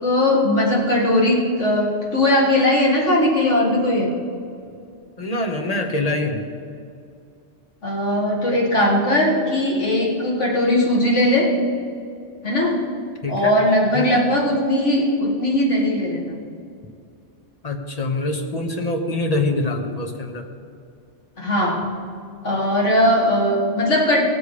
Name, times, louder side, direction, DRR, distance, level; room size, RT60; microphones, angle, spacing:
voice 1, 0.0-4.2 7.8-11.5 12.4-12.8 13.3-16.4 21.4-21.9 22.4-24.2, left 1 dB, 85° left, -3 dB, 2.5 m, -19 dB
voice 2, 5.2-6.4 13.2-13.5 13.9-14.2 17.6-20.5, left 2 dB, 35° left, 3 dB, 1.1 m, -24 dB
18.0 x 7.1 x 5.0 m, 2.4 s
omnidirectional pair, 1.2 m